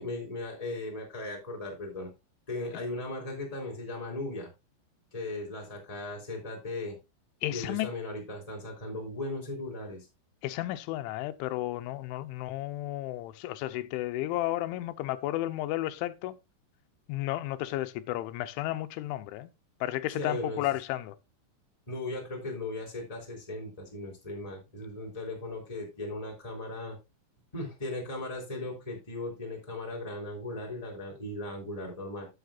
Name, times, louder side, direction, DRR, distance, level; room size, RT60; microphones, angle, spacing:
voice 1, 0.0-2.1 2.5-4.5 5.1-7.0 7.5-10.1 20.1-20.7 21.9-27.0 27.5-32.3, left 2 dB, 10° left, 2.9 m, -37 dB
voice 2, 7.4-7.9 10.4-16.4 17.1-19.5 19.8-21.1, left 15 dB, 90° left, 3.1 m, -33 dB
13.0 x 7.8 x 2.5 m
omnidirectional pair, 5.3 m